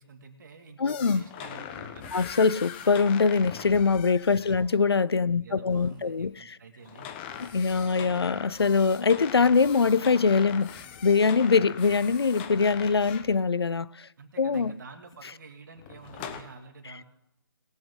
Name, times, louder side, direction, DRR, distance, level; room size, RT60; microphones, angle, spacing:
voice 1, 0.0-2.2 4.4-4.6 5.3-7.1 7.7-8.1 11.6-11.7 14.2-17.0, right 4 dB, 50° right, 2.2 m, -48 dB
voice 2, 0.8-1.2 2.1-6.6 7.4-14.1 14.4-14.7, left 5 dB, 85° left, 0.5 m, -23 dB
sound 1, 0.9-4.6 6.8-13.4 15.8-16.4, left 9 dB, 25° left, 1.0 m, -41 dB
sound 2, 4.4-5.2 5.7-6.4 7.3-8.0 9.0-9.7 10.8-11.5 12.4-13.2 14.5-14.8 15.1-15.2 16.2-16.4, left 1 dB, 5° left, 2.6 m, -56 dB
21.0 x 7.9 x 3.8 m
figure-of-eight pair, 145°, 13 cm